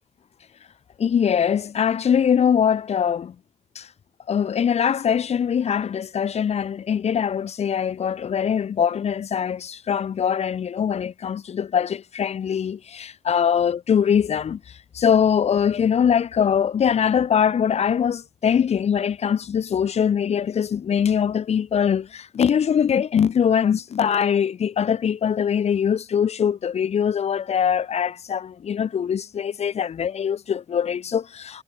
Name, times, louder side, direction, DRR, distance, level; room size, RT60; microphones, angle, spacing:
voice 1, 1.0-3.3 3.8-3.9 4.3-14.6 14.9-31.6, left 8 dB, 75° left, 0.9 m, -22 dB
cardioid pair, 70°, 11 cm